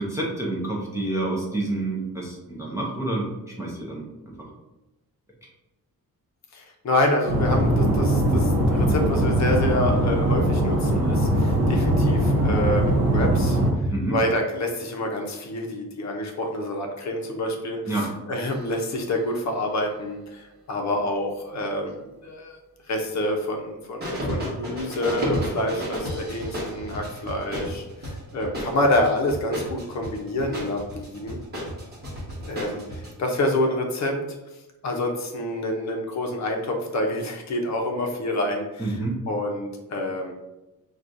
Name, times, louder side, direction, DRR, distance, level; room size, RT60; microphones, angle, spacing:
voice 1, 0.0-3.3 3.6-4.1 4.4-4.5 5.4-5.5 13.9-14.2 17.9-18.1 38.8-39.2, right 2 dB, 10° right, -4 dB, 0.5 m, -28 dB
voice 2, 6.5-22.6 22.9-31.4 32.4-34.2 34.8-39.0 39.3-40.3, left 1 dB, 50° left, 1 dB, 0.6 m, -27 dB
sound 1, 7.3-13.7, right 1 dB, 40° right, 0.8 m, -21 dB
sound 2, 18.4-19.8 24.0-33.1, equal, 25° right, 1.1 m, -32 dB
5.9 x 2.3 x 2.5 m, 0.99 s
wide cardioid pair, 180°, 37 cm